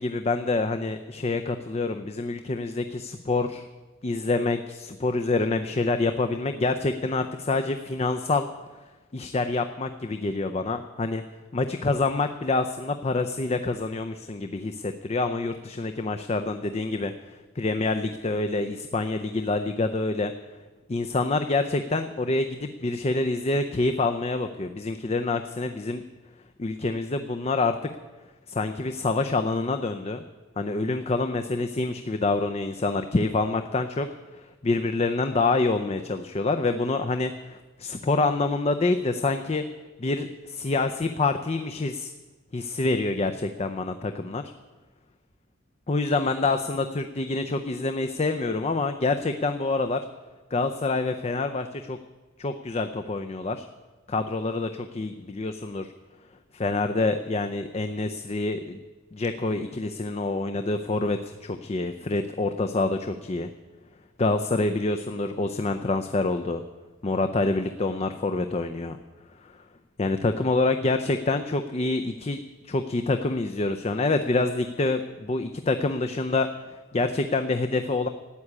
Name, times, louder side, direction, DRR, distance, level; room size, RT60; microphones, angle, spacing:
voice 1, 0.0-3.7 4.0-8.5 9.1-11.2 11.5-20.3 20.9-26.0 26.6-27.7 28.5-30.2 30.6-34.1 34.3-39.6 40.0-42.1 42.5-44.4 45.9-50.0 50.5-52.0 52.4-53.7 54.1-55.9 56.5-58.8 59.1-63.5 64.2-66.6 67.0-69.0 69.4-69.6 70.0-72.4 72.6-78.1, left 3 dB, 30° left, 7 dB, 0.5 m, -27 dB
12.5 x 8.6 x 9.7 m, 1.3 s
head